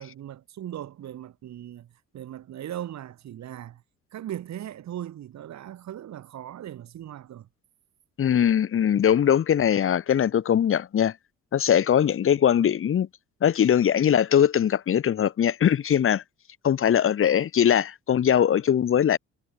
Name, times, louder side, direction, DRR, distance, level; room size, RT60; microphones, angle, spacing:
voice 1, 0.0-3.8 4.1-7.5, right 11 dB, 65° right, 1.7 m, -38 dB
voice 2, 8.2-11.1 11.5-13.1 13.4-16.2 16.6-19.2, left 9 dB, 45° left, 0.9 m, -21 dB
cardioid pair, 90°, 30 cm